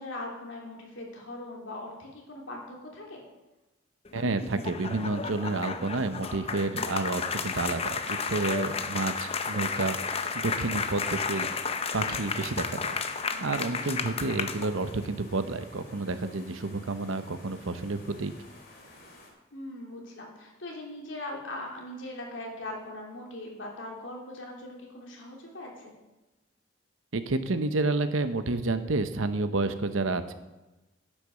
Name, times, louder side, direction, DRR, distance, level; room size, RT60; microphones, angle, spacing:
voice 1, 0.0-3.2 13.2-13.9 19.5-25.9, left 1 dB, 70° left, -1 dB, 3.1 m, -40 dB
sound 1, 4.0-15.0, left 5 dB, 30° left, 0.7 m, -33 dB
voice 2, 4.1-11.5 11.9-13.0 13.4-18.3 27.1-30.3, right 3 dB, 85° right, 10 dB, 0.9 m, -30 dB
sound 2, 7.3-19.3, left 1 dB, 50° left, 2.7 m, -52 dB
10.0 x 8.7 x 6.4 m, 1.0 s
head